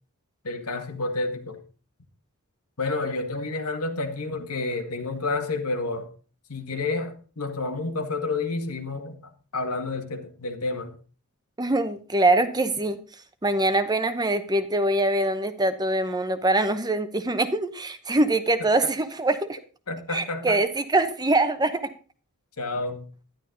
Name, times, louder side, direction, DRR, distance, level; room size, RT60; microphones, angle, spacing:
voice 1, 0.4-1.6 2.8-6.1 6.5-11.0 18.6-18.7 19.9-20.6 22.6-23.1, left 3 dB, 90° left, 2.0 m, -30 dB
voice 2, 11.6-13.0 13.4-19.6 20.1-21.9, right 2 dB, 20° right, 0.9 m, -23 dB
12.0 x 11.0 x 3.9 m
head